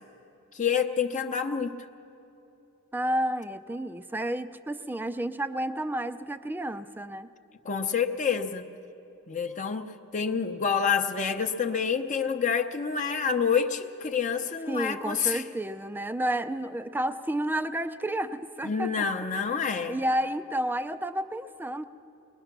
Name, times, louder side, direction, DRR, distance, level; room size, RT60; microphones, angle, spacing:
voice 1, 0.5-1.8 7.6-8.6 9.3-15.4 18.6-20.0, left 6 dB, 35° left, 5 dB, 0.7 m, -28 dB
voice 2, 2.9-7.3 14.7-21.9, right 1 dB, 10° right, 10 dB, 0.4 m, -31 dB
22.0 x 20.0 x 5.9 m, 2.9 s
head